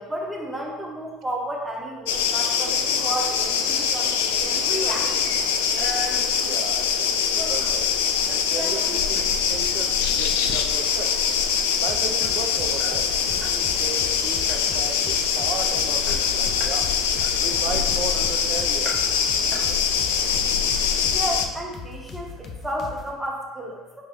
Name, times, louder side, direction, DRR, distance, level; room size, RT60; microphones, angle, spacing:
voice 1, 0.0-5.4 21.1-24.0, right 1 dB, 10° right, -2 dB, 1.1 m, -32 dB
sound 1, 2.1-21.4, left 7 dB, 80° left, 0.3 m, -23 dB
sound 2, 3.4-3.9 4.2-7.8 8.3-9.3 9.7-9.9 10.3-10.6 10.9-11.0 11.3-13.6 13.9-14.1 14.5-14.9 15.4-15.5 15.7-16.8 17.2-18.4 18.8-19.2 19.5-20.1, equal, 35° right, 0.9 m, -37 dB
voice 2, 6.4-7.9 8.3-11.2 11.8-16.9 17.4-18.9, right 5 dB, 55° right, 4 dB, 0.6 m, -35 dB
sound 3, 11.9-23.1, left 4 dB, 45° left, 0.7 m, -40 dB
4.7 x 3.6 x 3.1 m, 1.1 s
hypercardioid pair, 70°, 0 cm